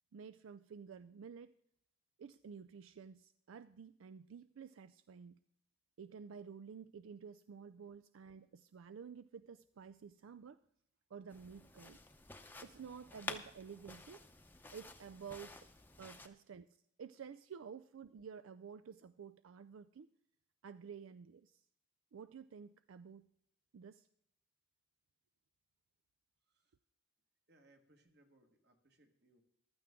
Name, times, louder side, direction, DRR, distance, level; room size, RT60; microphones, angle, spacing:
voice 1, 0.1-1.5 2.2-5.4 6.0-10.6 11.1-12.0 12.6-14.2 14.7-15.6 16.0-16.7 17.0-20.1 20.6-21.6 22.1-23.2 23.7-24.1, right 6 dB, 80° right, 14 dB, 0.4 m, -52 dB
sound 1, 11.3-16.3, left 3 dB, 10° left, 0.7 m, -51 dB
voice 2, 27.5-29.4, right 1 dB, 50° right, 5 dB, 1.7 m, -69 dB
15.0 x 12.5 x 3.7 m, 0.71 s
head